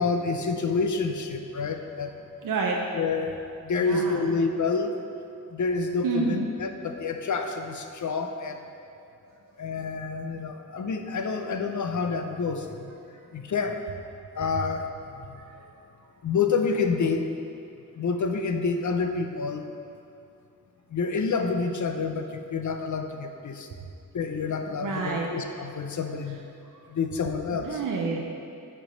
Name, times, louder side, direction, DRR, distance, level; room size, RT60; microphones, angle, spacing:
voice 1, 0.0-2.1 2.9-3.3 3.6-5.0 5.5-8.6 9.6-12.9 13.3-13.8 14.4-14.9 15.3-15.4 16.2-17.3 18.0-19.6 20.9-23.7 24.1-26.4 26.9-27.8, left 4 dB, 65° left, 6 dB, 0.6 m, -28 dB
voice 2, 2.4-2.8 3.8-4.1 6.0-6.5 24.8-25.3 27.5-28.3, right 4 dB, 90° right, -1 dB, 0.6 m, -28 dB
8.9 x 3.3 x 5.2 m, 2.6 s
wide cardioid pair, 70°, 31 cm